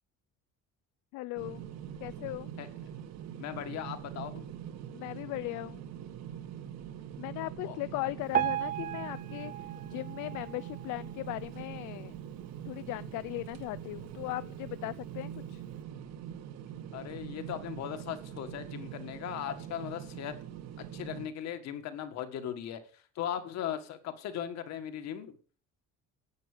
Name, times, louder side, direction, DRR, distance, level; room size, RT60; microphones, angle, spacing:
voice 1, 1.1-1.6 2.0-2.5 4.9-5.8 7.2-12.2 12.7-15.6, left 19 dB, 75° left, 16 dB, 0.5 m, -38 dB
sound 1, 1.4-21.3, right 9 dB, 55° right, 1.3 m, -43 dB
voice 2, 3.4-4.4 7.6-7.8 16.9-20.3 20.9-25.4, left 10 dB, 60° left, 8 dB, 1.9 m, -38 dB
Piano, 8.3-11.4 12.0-12.1 12.4-12.5 13.2-13.3 13.9-14.0, right 11 dB, 25° right, 0.5 m, -35 dB
10.5 x 8.7 x 6.8 m, 0.39 s
cardioid pair, 175°, 31 cm